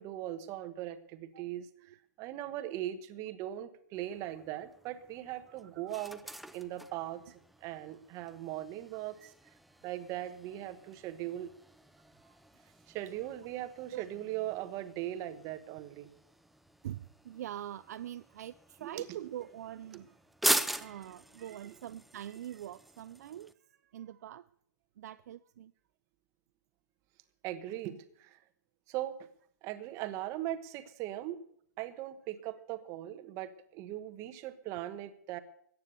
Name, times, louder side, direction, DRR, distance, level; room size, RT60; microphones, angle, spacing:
voice 1, 0.0-6.2 6.5-7.2 7.6-9.2 9.8-11.5 12.9-16.1 18.8-18.9 20.6-20.8 27.4-28.4 28.9-29.3 29.6-31.4 31.8-35.4, right 13 dB, 30° right, 12 dB, 1.2 m, -39 dB
sound 1, 3.9-23.5, right 1 dB, ahead, 0.5 m, -42 dB
voice 2, 12.0-12.4 13.9-14.1 16.8-20.2 20.7-24.5 25.0-25.7, right 11 dB, 60° right, 13 dB, 0.5 m, -44 dB
14.5 x 9.4 x 6.9 m, 0.65 s
hypercardioid pair, 135°, 10 cm